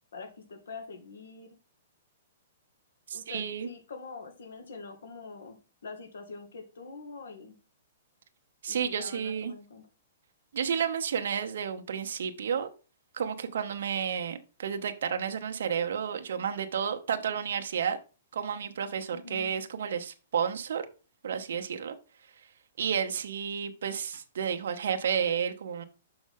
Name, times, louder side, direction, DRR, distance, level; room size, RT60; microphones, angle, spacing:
voice 1, 0.1-1.6 3.1-5.6 5.8-7.6 8.7-9.8 19.1-19.5, left 4 dB, 85° left, 6 dB, 1.9 m, -44 dB
voice 2, 3.1-3.7 8.6-9.5 10.5-12.7 13.1-18.0 18.3-20.8 21.2-22.0 22.8-25.8, right 7 dB, 65° right, 6 dB, 0.9 m, -31 dB
6.4 x 5.9 x 3.6 m, 0.33 s
hypercardioid pair, 175°, 0 cm